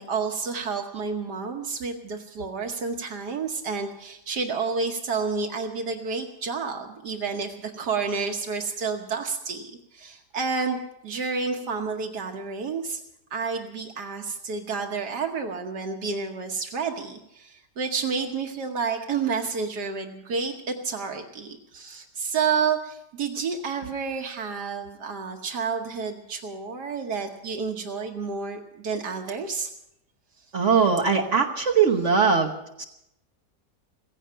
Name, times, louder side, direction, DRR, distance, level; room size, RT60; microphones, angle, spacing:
voice 1, 0.0-13.0 13.3-29.7, right 5 dB, 75° right, 3 dB, 1.7 m, -30 dB
voice 2, 30.5-32.5 32.8-32.9, right 5 dB, 50° right, 2 dB, 1.3 m, -20 dB
16.5 x 15.5 x 5.6 m, 0.83 s
omnidirectional pair, 1.8 m